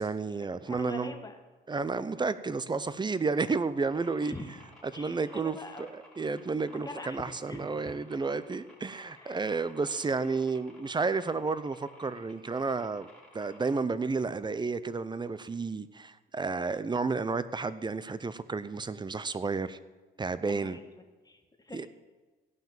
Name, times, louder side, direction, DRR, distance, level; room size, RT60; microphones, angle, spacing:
voice 1, 0.0-1.1 1.7-4.3 4.9-13.1 13.3-19.8 20.2-20.8 21.7-21.9, right 4 dB, 20° right, 15 dB, 0.6 m, -31 dB
voice 2, 0.7-1.4 4.2-4.4 4.9-5.9 6.7-8.2 9.2-9.6 20.5-21.9, left 2 dB, 20° left, 6 dB, 1.4 m, -44 dB
sound 1, 3.9-13.7, left 1 dB, 5° left, 3.7 m, -55 dB
16.0 x 5.9 x 7.4 m, 1.3 s
cardioid pair, 90°, 20 cm